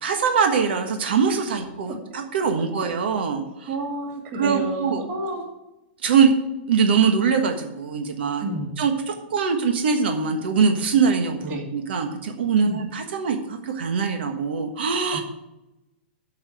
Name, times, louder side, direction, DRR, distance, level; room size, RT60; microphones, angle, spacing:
voice 1, 0.0-3.7 4.4-5.0 6.0-6.3 6.7-8.5 8.8-15.2, right 6 dB, 75° right, 4 dB, 1.4 m, -22 dB
voice 2, 3.4-5.4 8.4-8.7 11.4-11.7 12.6-12.8, right 1 dB, 25° right, 0 dB, 2.2 m, -30 dB
8.9 x 5.7 x 7.9 m, 0.93 s
supercardioid pair, 175°, 6 cm